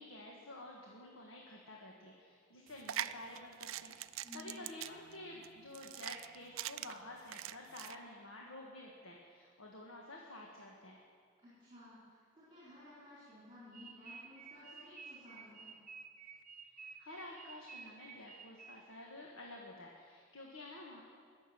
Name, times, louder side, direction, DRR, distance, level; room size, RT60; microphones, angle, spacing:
voice 1, 0.0-11.0 16.7-21.0, left 1 dB, 90° left, -1 dB, 1.6 m, -51 dB
sound 1, 2.7-7.9, right 12 dB, 75° right, 0.4 m, -43 dB
voice 2, 4.2-4.6 11.4-15.8, left 1 dB, 25° right, -8 dB, 4.3 m, -56 dB
sound 2, 13.7-19.0, right 5 dB, 45° right, 0.8 m, -53 dB
20.5 x 7.2 x 7.5 m, 2.1 s
head